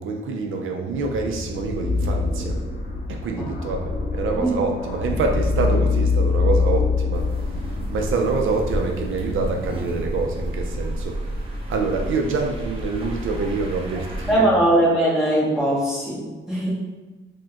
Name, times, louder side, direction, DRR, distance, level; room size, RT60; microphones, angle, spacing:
voice 1, 0.0-2.6 3.1-7.3 7.9-11.2 11.7-14.5, right 4 dB, 75° right, 2 dB, 0.4 m, -26 dB
sound 1, 0.9-10.3, left 4 dB, 45° left, 0.6 m, -25 dB
sound 2, 7.1-14.3, right 1 dB, 25° right, 0.6 m, -31 dB
voice 2, 14.3-16.7, right 1 dB, 5° right, -8 dB, 1.1 m, -20 dB
4.3 x 2.2 x 2.8 m, 1.2 s
wide cardioid pair, 150°, 21 cm